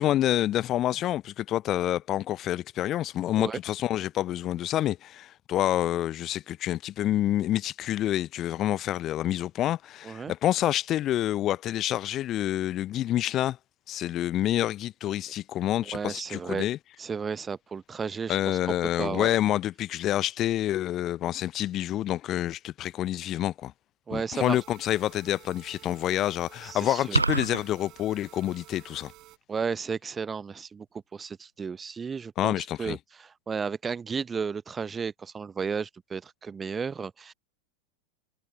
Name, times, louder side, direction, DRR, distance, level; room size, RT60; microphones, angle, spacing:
voice 1, 0.0-13.6 13.9-16.8 18.3-23.7 24.1-29.1 32.4-33.0, left 13 dB, 30° left, 0.7 m, -28 dB
voice 2, 15.9-16.7 17.0-18.6 19.0-19.3 24.1-24.6 26.6-27.2 29.5-30.9 31.1-37.3, right 5 dB, 15° right, 0.7 m, -33 dB
sound 1, 24.4-29.4, right 18 dB, 40° right, 4.5 m, -52 dB
sound 2, 27.1-27.6, right 2 dB, 80° right, 0.6 m, -24 dB
figure-of-eight pair, 90°, 0 cm